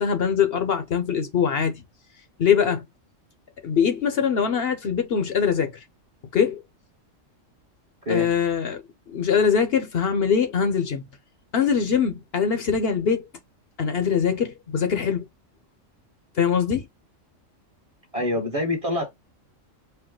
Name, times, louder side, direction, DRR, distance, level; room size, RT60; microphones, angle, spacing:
voice 1, 0.0-1.7 2.4-2.8 3.6-5.7 6.3-6.6 8.1-8.8 9.1-11.0 11.5-13.3 13.8-15.2 16.4-16.9, left 7 dB, 55° left, 0.8 m, -22 dB
voice 2, 18.1-19.1, left 1 dB, 30° right, 1.1 m, -26 dB
4.5 x 2.2 x 3.6 m
omnidirectional pair, 1.3 m